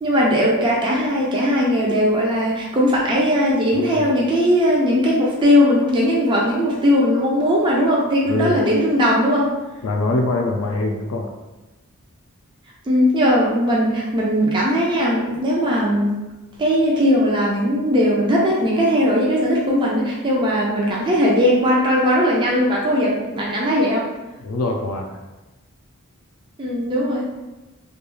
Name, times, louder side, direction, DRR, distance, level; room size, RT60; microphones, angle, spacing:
voice 1, 0.0-9.5 12.9-16.1 16.6-24.1 26.6-27.3, equal, 20° right, -4 dB, 0.4 m, -18 dB
voice 2, 8.3-8.6 9.8-11.3 24.4-25.2, left 2 dB, 75° left, 1 dB, 0.4 m, -23 dB
2.3 x 2.3 x 3.0 m, 1.1 s
head